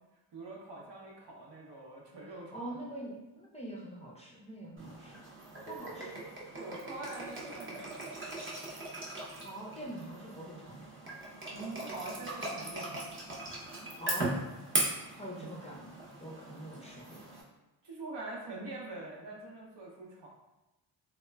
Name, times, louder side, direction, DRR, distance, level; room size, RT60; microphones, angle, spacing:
voice 1, 0.3-2.8 5.9-6.1 6.5-8.1 11.5-13.0 13.8-13.9 15.3-15.5 17.8-20.3, right 2 dB, 60° right, -3 dB, 0.8 m, -44 dB
voice 2, 2.3-5.2 5.6-6.2 9.4-10.9 14.0-14.3 15.1-15.9 16.2-17.2, right 1 dB, 15° left, -5 dB, 0.5 m, -44 dB
sound 1, 4.8-17.4, right 2 dB, 25° right, 0.7 m, -39 dB
2.9 x 2.1 x 2.2 m, 0.99 s
cardioid pair, 70°, 48 cm